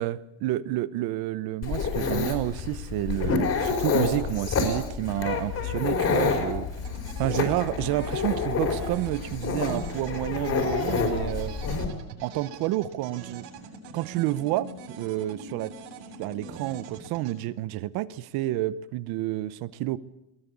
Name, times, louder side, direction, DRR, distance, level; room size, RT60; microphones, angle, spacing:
voice 1, 0.0-6.7 7.2-11.5 12.2-13.4 13.9-15.7 16.2-20.0, right 15 dB, 50° right, 16 dB, 0.9 m, -29 dB
Dog, 1.6-11.9, left 5 dB, 30° left, 4.8 m, -28 dB
sound 1, 6.8-17.3, right 3 dB, 70° right, 7.7 m, -43 dB
22.0 x 18.5 x 8.5 m, 0.90 s
cardioid pair, 155°, 47 cm